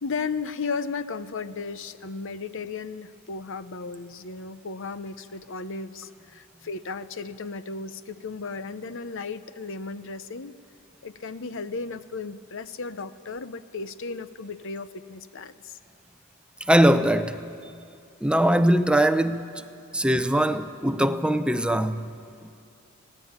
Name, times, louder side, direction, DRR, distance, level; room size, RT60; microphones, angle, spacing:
voice 1, 0.0-10.5 11.0-15.8, left 4 dB, 65° left, 0.8 m, -35 dB
voice 2, 16.6-17.4 18.2-19.5 19.9-22.2, right 1 dB, 5° right, 0.6 m, -21 dB
25.5 x 18.0 x 8.9 m
head